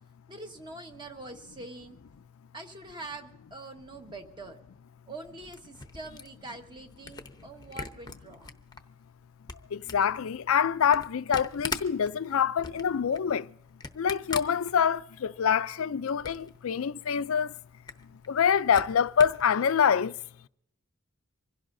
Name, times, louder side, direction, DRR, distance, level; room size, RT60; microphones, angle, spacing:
voice 1, 0.3-2.0 2.5-4.6 5.1-8.6, right 2 dB, 20° right, 1.4 m, -44 dB
Camera, 5.1-8.8 9.2-15.3 15.6-16.6 16.9-17.0 17.2-17.3 17.7-19.5, left 4 dB, 20° left, 0.8 m, -41 dB
voice 2, 9.7-13.5 14.0-17.5 18.3-20.1, left 7 dB, 75° left, 0.4 m, -25 dB
25.0 x 16.5 x 2.7 m
head